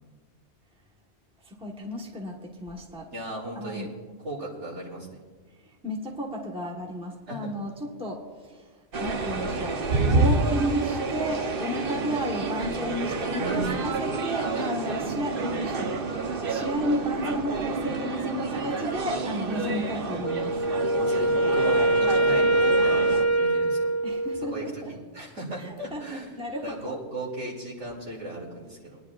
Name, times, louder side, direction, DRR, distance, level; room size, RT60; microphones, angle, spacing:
voice 1, 1.4-3.1 3.5-3.9 5.6-20.6 24.0-24.9 25.6-26.9, equal, 5° right, -1 dB, 1.2 m, -33 dB
voice 2, 3.1-3.9 4.2-5.2 7.3-7.5 13.4-13.8 21.0-23.9 24.5-29.0, right 2 dB, 80° right, -4 dB, 3.0 m, -36 dB
sound 1, 8.9-23.2, right 3 dB, 55° right, 1.0 m, -29 dB
Wind instrument woodwind instrument, 20.2-24.6, right 1 dB, 15° left, 0.9 m, -23 dB
26.0 x 10.0 x 2.4 m, 1.5 s
omnidirectional pair, 1.2 m